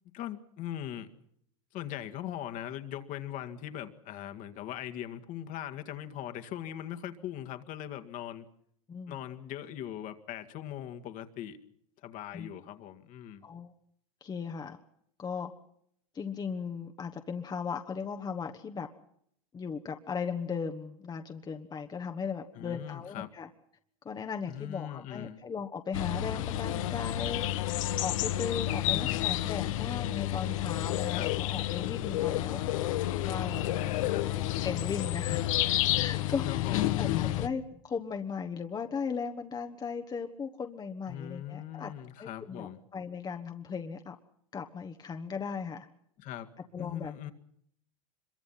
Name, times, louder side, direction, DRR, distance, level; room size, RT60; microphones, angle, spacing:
voice 1, 0.1-1.1 1.7-8.5 9.1-11.6 12.0-13.5 22.6-23.3 24.5-25.4 26.3-26.4 28.8-29.3 31.1-31.3 33.8-34.3 35.3-35.9 36.4-37.5 41.1-42.8 46.2-46.5 46.8-47.3, left 11 dB, 50° left, 7 dB, 2.0 m, -40 dB
voice 2, 14.2-14.8 15.2-15.5 16.1-18.9 19.5-23.5 24.0-33.9 34.6-41.9 42.2-44.1 44.5-45.9 46.7-47.1, left 6 dB, 25° left, 6 dB, 1.3 m, -37 dB
sound 1, 25.9-37.5, left 13 dB, 70° left, 1.2 m, -30 dB
25.0 x 23.0 x 5.8 m, 0.70 s
hypercardioid pair, 100°, 18 cm